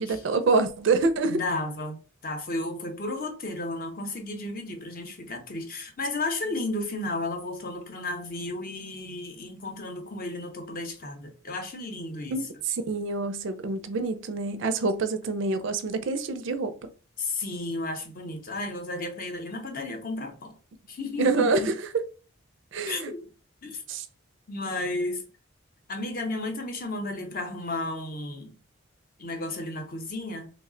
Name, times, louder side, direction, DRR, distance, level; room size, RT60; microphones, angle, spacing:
voice 1, 0.0-1.4 12.3-16.9 21.2-21.7 22.7-23.1 23.9-24.1, right 3 dB, 60° right, 0.4 m, -26 dB
voice 2, 1.2-12.4 17.2-20.5 20.9-21.7 22.8-23.3 23.6-23.8 24.5-25.3 25.9-28.5 29.2-30.5, left 2 dB, 40° left, 0.7 m, -33 dB
3.1 x 2.1 x 3.7 m
head